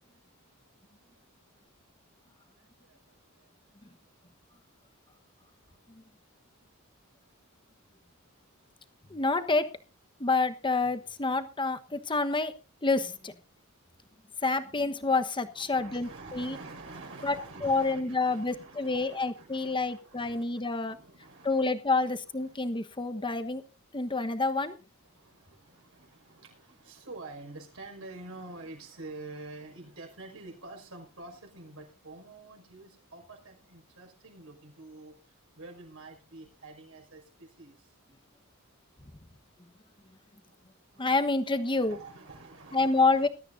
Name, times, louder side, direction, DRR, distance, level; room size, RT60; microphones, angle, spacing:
voice 1, 2.6-3.5 6.3-6.4 15.5-22.6 25.0-37.9 40.9-43.3, right 2 dB, 70° right, 3 dB, 5.5 m, -48 dB
voice 2, 9.1-9.7 10.2-12.5 12.8-13.3 14.4-16.6 17.2-17.3 17.6-21.0 21.4-23.6 23.9-24.7 41.0-42.0 42.7-43.3, left 3 dB, 25° left, 9 dB, 1.2 m, -28 dB
20.0 x 13.0 x 2.6 m, 0.32 s
head